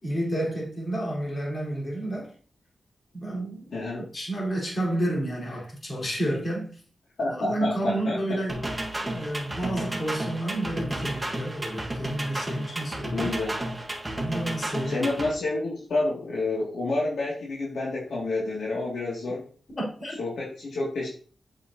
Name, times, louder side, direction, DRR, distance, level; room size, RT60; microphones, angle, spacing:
voice 1, 0.0-2.3 3.1-6.8 7.3-8.7 9.0-13.3 14.1-15.1 19.8-20.2, right 1 dB, 40° left, 4.0 m, -30 dB
voice 2, 3.7-4.0 7.2-8.4 13.1-13.5 14.9-19.4 20.2-21.1, left 2 dB, 80° left, 2.3 m, -29 dB
sound 1, 8.5-15.3, right 1 dB, 15° right, 1.6 m, -32 dB
8.3 x 6.2 x 2.8 m
wide cardioid pair, 90°, 0 cm